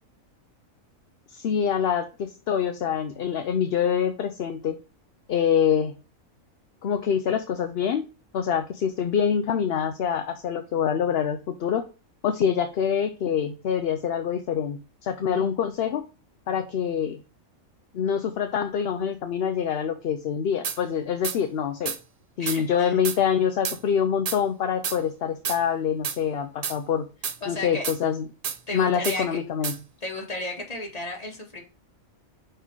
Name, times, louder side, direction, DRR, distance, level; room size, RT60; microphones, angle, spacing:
voice 1, 1.3-4.8 5.3-5.9 6.8-8.0 8.3-11.8 12.2-16.0 16.5-17.2 17.9-21.9 22.4-27.0 27.5-28.3 28.7-29.7, left 8 dB, 55° left, 8 dB, 0.7 m, -25 dB
sound 1, 20.6-20.8 21.2-21.4 21.9-22.0 22.5-22.6 23.0-23.2 23.6-23.8 24.3-24.4 24.8-25.0 25.5-25.6 26.0-26.2 26.6-26.8 27.2-27.4 27.8-28.0 28.4-28.6 29.0-29.2 29.6-29.8, right 7 dB, 80° right, 0.3 m, -30 dB
voice 2, 22.4-23.0 27.4-27.9 28.7-29.4 30.0-31.6, left 2 dB, 30° left, 0 dB, 1.9 m, -33 dB
5.4 x 4.3 x 4.7 m, 0.33 s
omnidirectional pair, 1.4 m